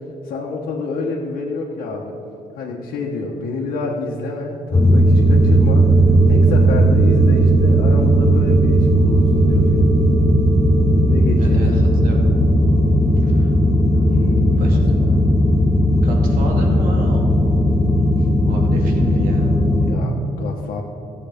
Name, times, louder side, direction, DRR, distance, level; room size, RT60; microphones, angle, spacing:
voice 1, 0.2-2.2 2.5-5.9 6.3-9.9 11.1-11.8 14.0-15.2 19.8-20.8, left 3 dB, 80° left, -4 dB, 1.4 m, -28 dB
sound 1, 4.7-19.9, equal, 40° left, 2.4 m, -15 dB
voice 2, 11.4-12.2 13.2-13.6 14.6-15.0 15.5-15.6 16.0-17.3 18.4-19.5, right 2 dB, 85° right, 0 dB, 2.2 m, -32 dB
14.5 x 8.0 x 5.3 m, 2.8 s
cardioid pair, 105°, 15 cm